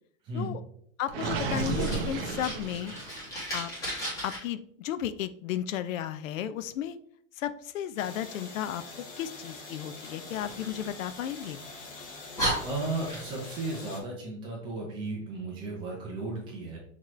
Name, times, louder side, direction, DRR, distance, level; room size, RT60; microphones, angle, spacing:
voice 1, 1.0-2.9 3.5-3.7 4.2-7.0 7.4-8.8 9.2-11.6, left 10 dB, 75° left, 13 dB, 0.5 m, -34 dB
Gurgling, 1.1-3.2, right 4 dB, 45° right, 0.9 m, -32 dB
Fire, 1.4-4.4 10.3-11.5 12.0-12.1 12.4-13.6, right 1 dB, 10° left, 1.4 m, -35 dB
sound 1, 8.0-14.0, left 3 dB, 25° left, 0.7 m, -45 dB
voice 2, 12.6-16.8, right 2 dB, 10° right, -2 dB, 0.5 m, -35 dB
5.9 x 3.0 x 3.0 m, 0.66 s
supercardioid pair, 165°, 40 cm